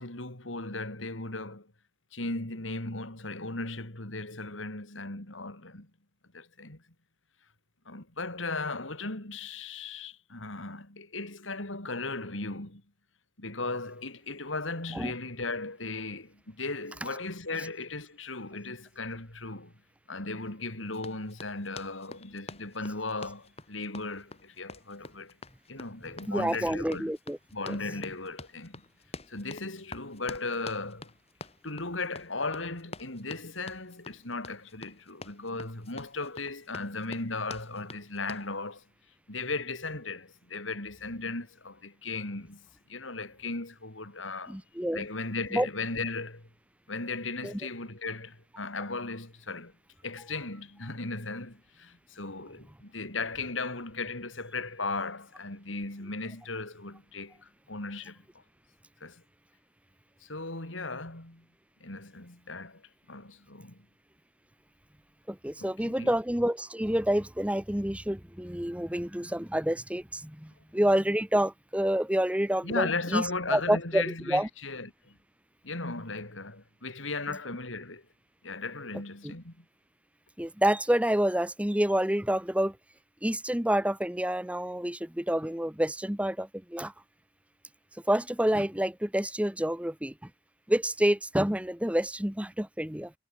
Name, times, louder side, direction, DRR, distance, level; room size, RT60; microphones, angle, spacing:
voice 1, 0.0-1.7 2.1-5.9 6.3-6.8 7.9-12.8 13.4-19.7 20.1-25.4 25.7-27.1 27.5-28.8 29.3-31.1 31.6-38.8 39.3-44.6 44.9-46.5 46.9-49.7 50.0-58.2 59.0-59.2 60.2-61.4 61.8-62.8 63.1-63.8 65.6-66.1 72.6-75.2 75.6-78.0 78.4-79.6, left 3 dB, 90° left, 4.5 m, -36 dB
Run, 20.9-38.5, left 3 dB, 30° left, 5.1 m, -47 dB
voice 2, 26.3-27.4 27.7-27.8 44.5-45.1 45.5-45.7 47.4-47.5 65.3-74.5 79.2-79.3 80.4-82.8 83.2-86.9 88.1-90.1 90.7-93.1, right 1 dB, 5° right, 1.1 m, -28 dB
head